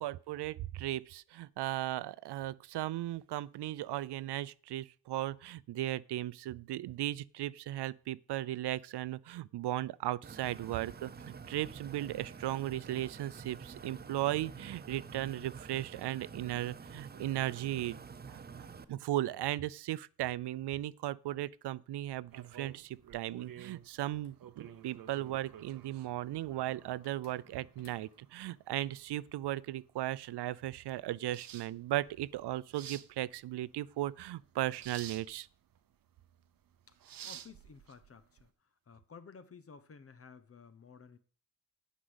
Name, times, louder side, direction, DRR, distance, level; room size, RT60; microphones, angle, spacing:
voice 1, 0.0-18.0 18.3-18.4 18.9-35.5, right 14 dB, 80° right, 0.5 m, -36 dB
sound 1, 10.2-18.8, right 5 dB, 25° right, 0.6 m, -48 dB
voice 2, 18.4-18.8 36.9-37.0 37.2-41.2, left 5 dB, 35° left, 0.9 m, -55 dB
sound 2, 22.3-38.5, right 10 dB, 60° right, 0.8 m, -53 dB
sound 3, 24.0-25.5 27.0-28.5, left 6 dB, 85° left, 2.1 m, -66 dB
9.9 x 5.2 x 7.9 m
wide cardioid pair, 140°, 40 cm